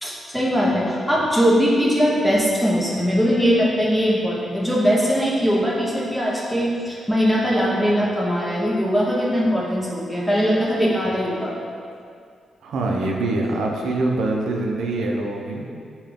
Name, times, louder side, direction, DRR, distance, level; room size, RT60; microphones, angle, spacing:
voice 1, 0.0-11.6, equal, 5° left, -5 dB, 0.7 m, -20 dB
voice 2, 12.6-15.7, right 2 dB, 80° right, 0 dB, 0.5 m, -24 dB
5.6 x 2.3 x 3.5 m, 2.3 s
cardioid pair, 70°, 0 cm